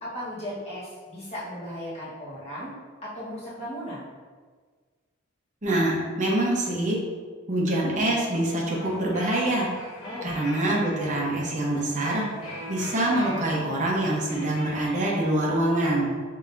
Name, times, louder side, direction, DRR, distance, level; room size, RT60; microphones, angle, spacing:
voice 1, 0.0-2.7 3.0-4.0 10.0-10.3, equal, 30° left, -9 dB, 1.4 m, -36 dB
voice 2, 5.6-7.0 7.5-9.7 10.2-12.3 12.7-16.1, right 1 dB, 35° right, -3 dB, 0.9 m, -25 dB
sound 1, 8.7-14.9, left 1 dB, 75° left, 0.9 m, -42 dB
5.3 x 2.8 x 2.6 m, 1.5 s
head